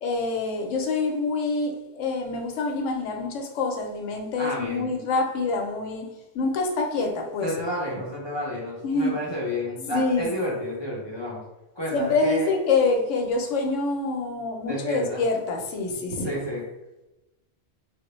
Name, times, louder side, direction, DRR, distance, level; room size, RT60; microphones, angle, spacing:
voice 1, 0.0-7.5 8.8-9.2 9.8-10.3 11.9-16.4, left 3 dB, 85° left, 3 dB, 0.9 m, -26 dB
voice 2, 4.4-4.9 7.4-11.4 11.8-12.5 14.6-15.2 16.2-16.6, left 1 dB, 30° left, -4 dB, 0.5 m, -30 dB
3.4 x 2.1 x 3.0 m, 1.0 s
omnidirectional pair, 1.2 m